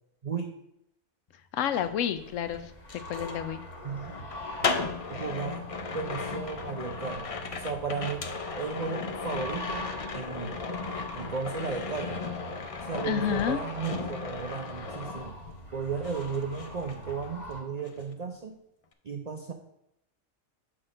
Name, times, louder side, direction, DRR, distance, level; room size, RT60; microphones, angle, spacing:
voice 1, 0.2-0.5 3.8-4.1 5.1-5.7 5.9-8.3 8.6-9.9 10.1-10.7 11.1-12.2 12.8-15.4 15.7-18.6 19.0-19.5, right 5 dB, 50° right, 3 dB, 0.4 m, -35 dB
voice 2, 1.5-2.7 3.1-3.6 13.0-13.6, left 9 dB, 70° left, 11 dB, 0.9 m, -29 dB
sound 1, 1.6-15.7 16.0-17.5 17.8-18.1, left 4 dB, 55° left, 0.3 m, -36 dB
sound 2, 2.2-17.6, equal, 30° left, 1.7 m, -43 dB
6.1 x 4.3 x 6.5 m, 0.79 s
omnidirectional pair, 1.4 m